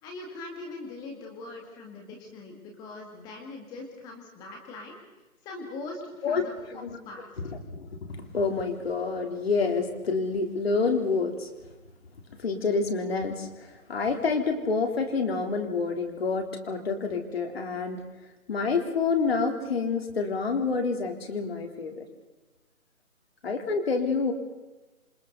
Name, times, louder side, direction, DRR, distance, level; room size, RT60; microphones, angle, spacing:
voice 1, 0.0-5.0 5.4-7.3, left 2 dB, 10° left, 2 dB, 1.9 m, -41 dB
voice 2, 7.4-11.5 12.4-18.0 18.5-22.0 23.4-24.3, left 4 dB, 45° left, 4 dB, 3.6 m, -28 dB
27.5 x 27.5 x 4.1 m, 1.1 s
figure-of-eight pair, 155°, 43 cm